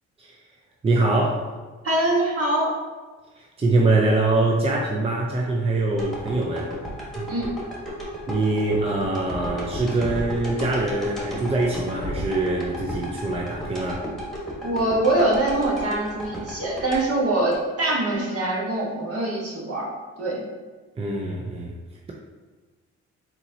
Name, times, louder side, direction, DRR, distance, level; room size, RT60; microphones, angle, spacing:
voice 1, 0.8-1.5 3.4-6.7 7.2-7.3 8.3-14.1 21.0-21.7, right 2 dB, 20° right, -2 dB, 0.6 m, -23 dB
voice 2, 1.8-2.7 7.3-7.5 14.6-19.9 20.2-20.4, right 1 dB, 50° right, -3 dB, 1.5 m, -23 dB
sound 1, 6.0-18.2 18.6-18.7, equal, ahead, 1.4 m, -34 dB
4.3 x 4.1 x 2.8 m, 1.3 s
cardioid pair, 90°, 30 cm